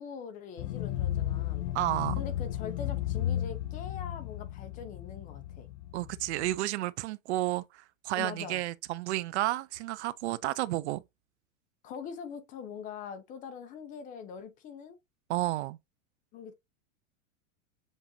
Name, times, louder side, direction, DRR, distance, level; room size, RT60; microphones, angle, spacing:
voice 1, 0.0-1.7 2.2-5.7 8.2-8.6 11.8-15.0 16.3-16.5, left 7 dB, 20° left, 0.6 m, -43 dB
sound 1, 0.6-6.6, left 12 dB, 65° left, 0.6 m, -34 dB
voice 2, 1.7-2.2 5.9-11.0 15.3-15.8, right 16 dB, 60° right, 0.5 m, -31 dB
7.2 x 2.5 x 2.7 m
supercardioid pair, 155°, 38 cm